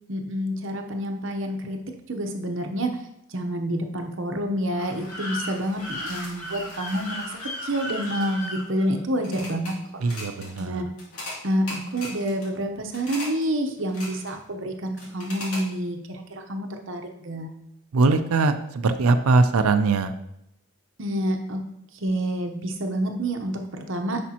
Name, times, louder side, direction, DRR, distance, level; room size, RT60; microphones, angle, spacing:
voice 1, 0.1-1.8 2.1-2.9 3.3-9.7 10.6-10.9 11.4-17.5 21.0-21.6 21.9-24.2, right 1 dB, 55° right, 4 dB, 0.9 m, -28 dB
sound 1, 4.8-9.7 10.0-10.6 11.0-11.4 11.7-12.5 12.9-13.4 13.8-14.4 15.0-15.6, left 2 dB, 75° left, 2.7 m, -36 dB
voice 2, 10.0-10.8 17.9-20.1, right 3 dB, 75° right, 8 dB, 0.5 m, -21 dB
10.0 x 5.1 x 2.9 m, 0.81 s
head